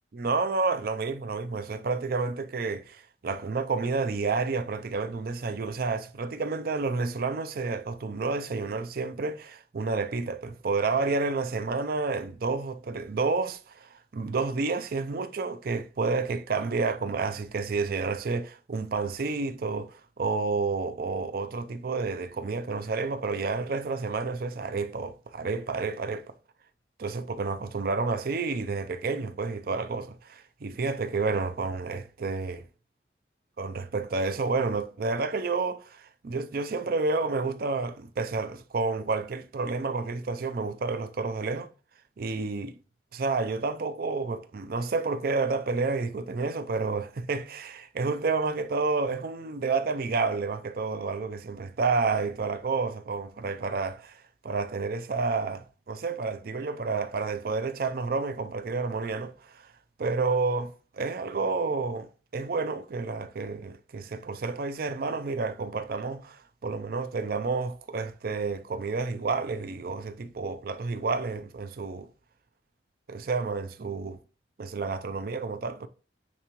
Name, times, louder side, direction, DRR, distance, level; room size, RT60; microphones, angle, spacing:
voice 1, 0.1-26.3 27.0-32.6 33.6-41.7 42.2-42.7 43.1-59.7 60.0-72.1 73.1-74.2 74.6-75.9, right 4 dB, 50° right, 0.4 m, -30 dB
9.1 x 3.7 x 3.0 m
head